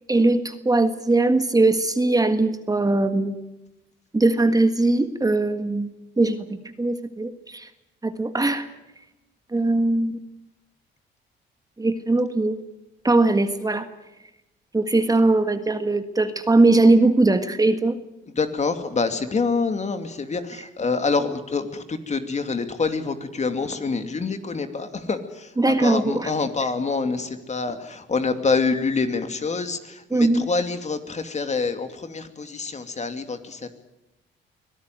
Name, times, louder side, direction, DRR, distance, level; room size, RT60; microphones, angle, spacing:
voice 1, 0.1-3.4 4.1-7.7 8.0-8.7 9.5-10.1 11.8-12.6 13.0-13.9 14.7-18.0 25.6-26.3 30.1-30.5, right 2 dB, 20° right, 9 dB, 1.7 m, -20 dB
voice 2, 18.4-33.7, left 4 dB, 35° left, 8 dB, 2.7 m, -26 dB
24.5 x 17.5 x 9.4 m, 0.94 s
cardioid pair, 90°, 20 cm